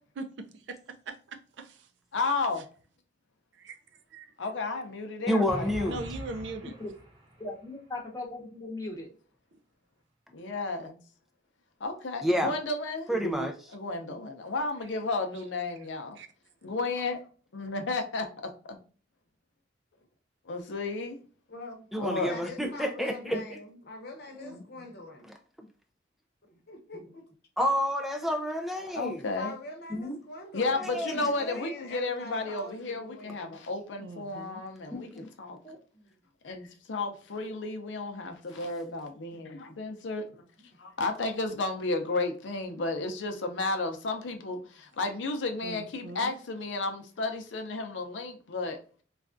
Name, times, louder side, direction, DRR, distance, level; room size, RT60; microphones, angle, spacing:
voice 1, 0.2-1.9 3.5-3.8 4.1-4.3 5.8-6.7 9.5-9.6 16.1-16.3 34.0-34.6 45.6-46.4, right 3 dB, 70° right, 0.5 m, -41 dB
voice 2, 2.1-2.6 4.4-6.0 10.3-11.0 11.8-13.1 13.7-16.2 16.6-17.2 17.5-18.3 18.7-18.8 20.5-21.2 22.0-22.4 24.5-24.9 28.9-29.5 30.5-35.1 35.4-35.6 36.4-40.3 40.8-48.8, left 3 dB, 90° left, 0.6 m, -33 dB
voice 3, 5.3-6.0 12.2-12.5 13.1-13.5 21.9-23.4 24.4-24.5 27.6-29.2 30.8-31.6, equal, ahead, 0.3 m, -29 dB
sound 1, 5.5-7.5, equal, 25° right, 0.8 m, -41 dB
voice 4, 7.4-9.1 12.4-12.5 13.1-13.5 23.3-23.4 29.9-30.2 34.9-35.3 35.6-35.8, left 1 dB, 20° left, 0.8 m, -37 dB
voice 5, 21.5-21.9 22.2-25.2 26.5-27.3 29.3-33.6 35.6-36.2 39.3-39.8 42.6-42.8, left 2 dB, 60° left, 0.8 m, -44 dB
3.3 x 2.3 x 2.5 m
head